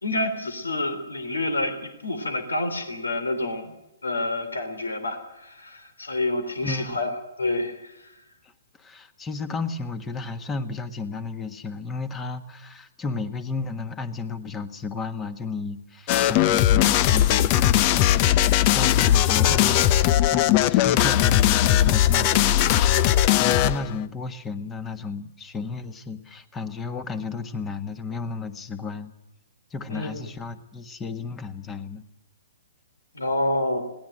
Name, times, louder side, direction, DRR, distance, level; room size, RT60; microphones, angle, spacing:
voice 1, 0.0-3.7 4.0-7.1 7.4-7.9 29.9-30.2 33.1-33.8, left 2 dB, 80° left, 10 dB, 3.5 m, -28 dB
voice 2, 6.6-7.1 8.4-8.5 8.8-23.0 23.3-29.1 29.7-32.0, left 4 dB, 15° left, 11 dB, 1.5 m, -33 dB
sound 1, 16.1-23.9, left 12 dB, 35° left, 0.7 m, -19 dB
21.5 x 18.0 x 7.7 m, 0.94 s
figure-of-eight pair, 125°, 0 cm